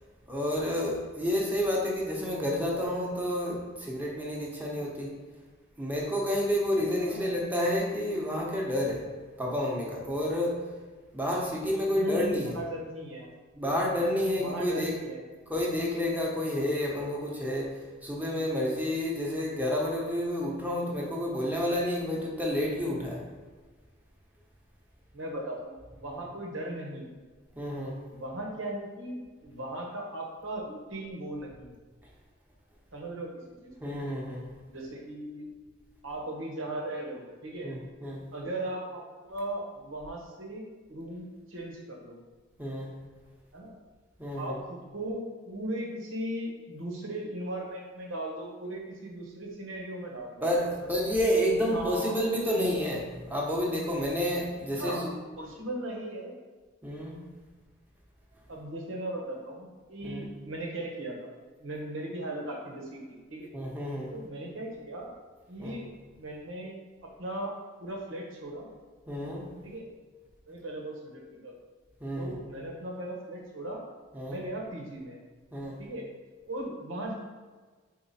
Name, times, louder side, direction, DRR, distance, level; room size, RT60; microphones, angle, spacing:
voice 1, 0.3-5.2 5.8-9.1 9.4-10.7 11.1-12.5 13.5-14.9 15.5-23.2 27.6-28.0 33.8-34.4 37.6-38.2 42.6-42.9 44.2-44.6 50.4-55.0 56.8-57.2 60.0-60.2 63.5-64.1 65.6-65.8 69.1-69.5 72.0-72.4 74.1-74.4 75.5-75.8, left 1 dB, 10° right, -3 dB, 1.0 m, -30 dB
voice 2, 7.0-7.7 11.8-13.3 14.4-15.3 25.1-27.2 28.1-31.8 32.9-34.0 34.7-35.5 36.0-37.7 38.3-42.2 43.5-43.7 44.4-50.5 50.8-50.9 51.6-52.2 52.5-52.7 54.7-55.1 55.4-56.4 58.5-61.3 61.6-63.5 64.1-65.1 65.5-65.9 66.2-67.5 67.8-68.7 69.6-69.8 70.5-71.6 72.2-73.8 74.3-75.2 75.8-76.1 76.5-77.1, right 1 dB, 80° right, 0 dB, 1.3 m, -38 dB
4.9 x 4.5 x 4.2 m, 1.4 s
head